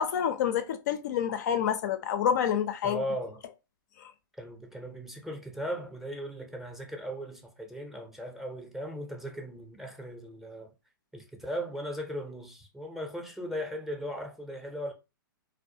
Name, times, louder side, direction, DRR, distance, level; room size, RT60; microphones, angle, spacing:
voice 1, 0.0-3.0 4.0-4.1, left 8 dB, 50° left, 0.4 m, -28 dB
voice 2, 2.8-3.4 4.4-10.7 11.1-14.9, equal, ahead, 0.5 m, -37 dB
2.2 x 2.1 x 2.6 m
hypercardioid pair, 120°, 12 cm